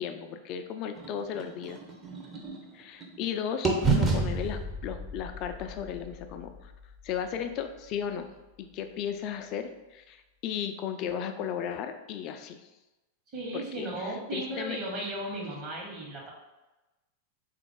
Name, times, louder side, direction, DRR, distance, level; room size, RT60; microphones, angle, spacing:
voice 1, 0.0-1.8 2.7-6.7 7.0-8.3 8.6-12.7 13.5-14.8, left 8 dB, 40° left, 7 dB, 0.3 m, -35 dB
sound 1, 0.9-3.3 3.6-7.6, right 3 dB, 20° right, 0.6 m, -31 dB
voice 2, 13.3-16.3, right 1 dB, 35° right, -2 dB, 1.1 m, -35 dB
3.5 x 2.4 x 3.6 m, 1.1 s
figure-of-eight pair, 90°, 0 cm